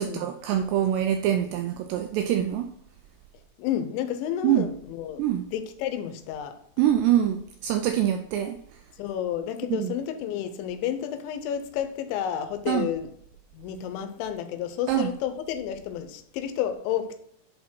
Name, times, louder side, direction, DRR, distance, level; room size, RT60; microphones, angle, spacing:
voice 1, 0.0-2.7 4.4-4.7 5.2-5.4 6.8-8.6 9.7-9.9 12.7-12.9 14.9-15.1, right 11 dB, 80° right, 2.5 m, -24 dB
voice 2, 3.6-5.2 5.5-6.6 9.0-13.1 13.5-17.2, left 10 dB, 85° left, 3.1 m, -31 dB
10.5 x 4.0 x 4.4 m
omnidirectional pair, 5.3 m